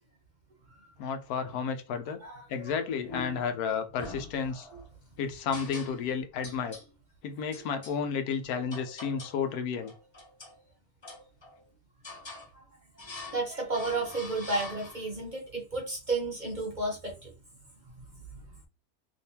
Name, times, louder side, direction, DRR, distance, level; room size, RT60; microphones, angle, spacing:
voice 1, 1.0-2.2 2.5-4.7 5.2-6.8 7.2-9.9, left 6 dB, 80° left, 1.1 m, -32 dB
sound 1, 3.0-3.6 4.0-4.9 5.5-6.2 6.4-6.9 7.5-8.0 8.7-9.4 9.8-10.6 11.0-11.6 12.0-12.5 13.0-13.5 13.7-15.2, left 3 dB, 50° left, 0.3 m, -44 dB
voice 2, 13.3-17.3 18.3-18.4, right 3 dB, 40° right, 0.8 m, -32 dB
3.4 x 2.9 x 2.8 m
omnidirectional pair, 1.6 m